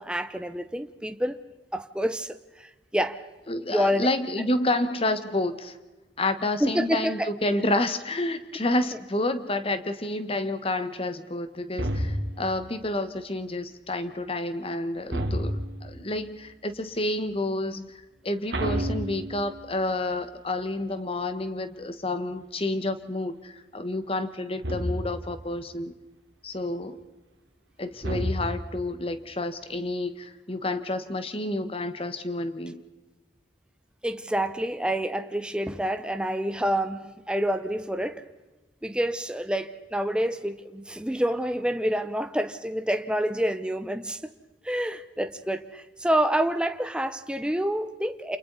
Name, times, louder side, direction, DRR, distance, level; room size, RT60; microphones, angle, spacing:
voice 1, 0.0-1.4 1.7-3.3 3.7-4.1 6.6-7.3 34.0-38.3 38.8-44.2 44.6-48.4, equal, 5° right, 0.7 m, -28 dB
voice 2, 3.5-5.8 6.2-25.9 26.4-27.0 27.8-32.8, left 2 dB, 30° left, 1.4 m, -29 dB
sound 1, 11.8-12.5 15.1-15.9 18.5-19.7 24.6-25.3 28.0-28.8, equal, 85° right, 2.7 m, -29 dB
29.5 x 28.0 x 4.1 m
head